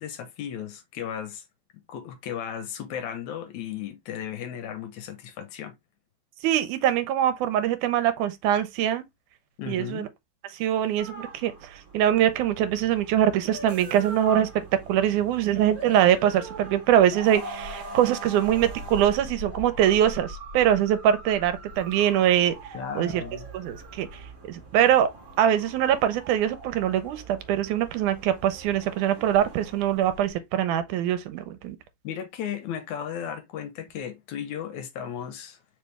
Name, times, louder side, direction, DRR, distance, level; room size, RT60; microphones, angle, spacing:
voice 1, 0.0-1.4 1.9-5.7 9.6-10.1 22.7-23.5 32.0-35.6, left 9 dB, 75° left, 2.0 m, -35 dB
voice 2, 6.4-9.1 9.7-10.1 10.5-14.5 14.9-22.6 23.0-23.2 23.5-24.1 24.4-25.1 25.4-31.8, right 10 dB, 90° right, 2.1 m, -23 dB
sound 1, 11.0-30.3, right 2 dB, 30° right, 1.8 m, -41 dB
4.8 x 3.5 x 3.2 m
omnidirectional pair, 3.5 m